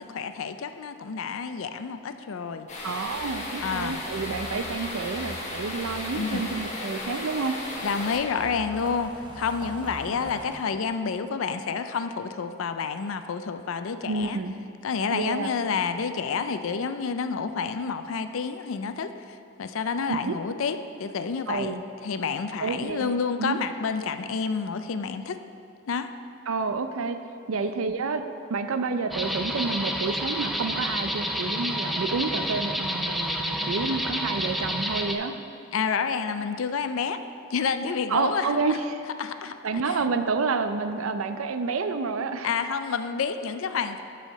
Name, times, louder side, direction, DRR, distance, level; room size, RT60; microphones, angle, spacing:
voice 1, 0.1-2.7 3.6-4.0 6.1-6.4 7.8-14.4 14.8-25.4 25.9-26.1 27.5-27.7 33.5-34.0 35.7-37.2 37.5-38.8 39.2-39.5 39.9-40.0 42.4-44.0, left 5 dB, 70° left, 9 dB, 0.4 m, -29 dB
sound 1, 2.7-8.2, left 2 dB, 35° left, 1.5 m, -35 dB
voice 2, 2.8-7.6 14.0-14.5 15.1-15.5 20.1-20.3 21.5-21.8 22.6-23.1 23.4-23.6 26.5-27.2 27.5-28.2 28.5-35.3 38.1-39.0 39.6-42.5, right 4 dB, 75° right, 9 dB, 0.5 m, -29 dB
sound 2, 3.1-10.6, right 1 dB, 25° right, 0.9 m, -43 dB
sound 3, 29.1-35.1, equal, ahead, 0.3 m, -29 dB
12.0 x 5.6 x 4.1 m, 2.5 s
head